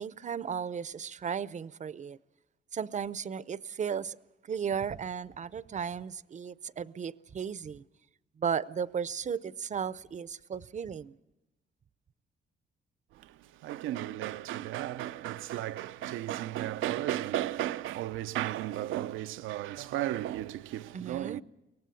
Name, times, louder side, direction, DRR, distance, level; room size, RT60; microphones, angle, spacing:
voice 1, 0.0-2.2 2.7-4.2 4.4-7.8 8.4-11.2 20.9-21.4, right 7 dB, 35° right, 0.6 m, -35 dB
voice 2, 13.1-21.4, right 13 dB, 90° right, 0.6 m, -34 dB
23.5 x 18.5 x 7.0 m
cardioid pair, 90°, 20 cm